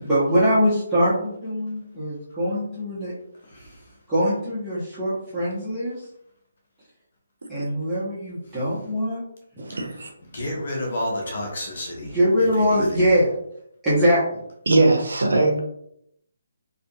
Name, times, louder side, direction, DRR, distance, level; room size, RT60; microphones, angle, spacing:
voice 1, 0.0-3.1 4.1-6.1 7.5-9.2 9.6-9.7 12.0-13.3 13.8-14.4, equal, 10° right, -13 dB, 0.9 m, -22 dB
voice 2, 3.4-4.0 10.3-13.0, left 1 dB, 60° left, 0 dB, 0.8 m, -31 dB
voice 3, 9.6-10.1 14.7-15.6, right 2 dB, 75° right, 3 dB, 0.6 m, -20 dB
2.7 x 2.4 x 2.3 m, 0.74 s
figure-of-eight pair, 150°, 0 cm